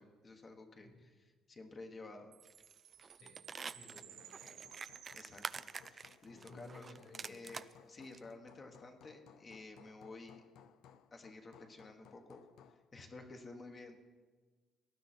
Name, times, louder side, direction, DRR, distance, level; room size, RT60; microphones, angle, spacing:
voice 1, 0.0-2.3 5.1-6.9 7.3-10.4 11.1-12.4 12.9-14.0, left 3 dB, 25° left, 4 dB, 1.3 m, -52 dB
Chime, 2.3-6.0, right 10 dB, 70° right, 1.0 m, -57 dB
sound 1, 2.5-2.7 3.0-7.7 8.1-8.2, right 5 dB, 30° right, 0.4 m, -46 dB
Hammer, 3.2-12.9, left 8 dB, 70° left, 0.6 m, -63 dB
voice 2, 3.7-4.7 6.3-7.4, left 2 dB, 50° left, 0 dB, 3.3 m, -57 dB
19.0 x 11.5 x 4.4 m, 1.4 s
cardioid pair, 140°, 0 cm